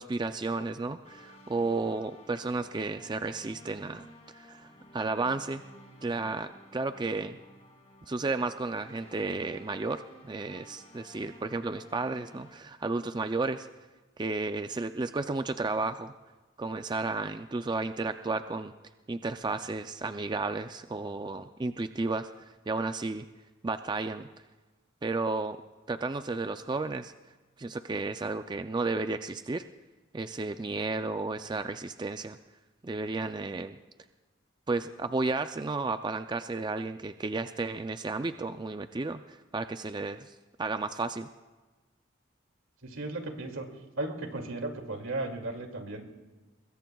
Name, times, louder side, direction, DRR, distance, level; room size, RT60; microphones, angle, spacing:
voice 1, 0.0-5.6 6.0-7.4 8.1-13.7 14.2-16.1 16.6-18.7 19.1-23.3 23.6-24.3 25.0-25.6 25.9-27.1 27.6-29.6 30.1-32.4 32.8-33.8 34.7-41.3, right 3 dB, 20° right, 9 dB, 0.4 m, -33 dB
sound 1, 1.0-12.6, left 1 dB, 30° left, 2.2 m, -54 dB
voice 2, 42.8-43.7 44.0-46.0, right 2 dB, 85° right, 3 dB, 2.4 m, -35 dB
23.5 x 21.5 x 2.3 m, 1.2 s
head